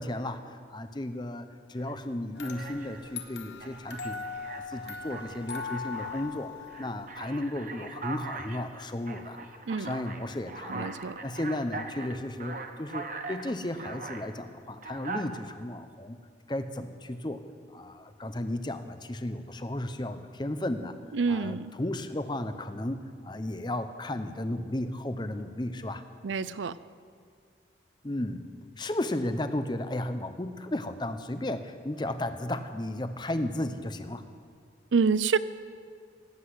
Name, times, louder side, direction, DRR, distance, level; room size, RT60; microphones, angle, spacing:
voice 1, 0.0-4.3 4.7-9.4 9.7-10.9 11.2-16.2 16.5-17.4 17.7-23.0 23.2-26.0 28.0-28.4 28.8-34.2, left 1 dB, 25° left, 10 dB, 0.7 m, -34 dB
Alarm, 1.8-2.0 2.4-3.1 3.6-6.3 6.7-14.3 14.8-15.3, right 3 dB, 45° right, 1.0 m, -41 dB
sound 1, 2.4-7.4, left 5 dB, 70° left, 1.2 m, -40 dB
voice 2, 10.7-11.1 21.1-21.7 26.2-26.7 34.9-35.4, right 5 dB, 85° right, 16 dB, 0.5 m, -27 dB
17.5 x 8.1 x 8.0 m, 2.2 s
head